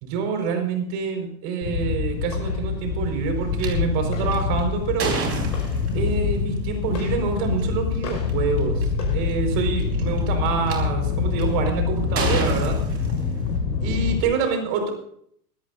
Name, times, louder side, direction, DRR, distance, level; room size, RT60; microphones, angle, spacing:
voice 1, 0.0-5.2 5.9-8.8 9.1-12.8 13.8-14.9, right 6 dB, 55° right, 4 dB, 5.3 m, -26 dB
sound 1, 1.6-14.2, left 5 dB, 80° left, 5.7 m, -25 dB
sound 2, 3.6-3.7 4.3-6.2 7.4-7.6 8.3-8.4 8.6-9.0 9.8-10.7 11.4-11.7 12.2-13.6, right 4 dB, 30° right, 4.6 m, -29 dB
24.0 x 14.0 x 2.7 m, 0.67 s
hypercardioid pair, 105°, 49 cm